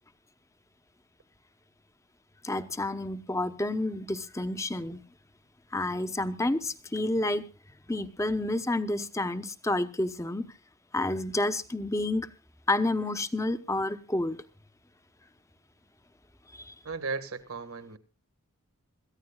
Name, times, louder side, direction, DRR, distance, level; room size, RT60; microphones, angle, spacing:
voice 1, 2.4-5.0 5.7-7.4 7.9-10.4 10.9-12.3 12.7-14.4 16.5-16.7, left 2 dB, 15° left, 0.9 m, -29 dB
voice 2, 16.8-18.0, right 4 dB, 70° right, 1.7 m, -35 dB
26.5 x 14.5 x 2.3 m
head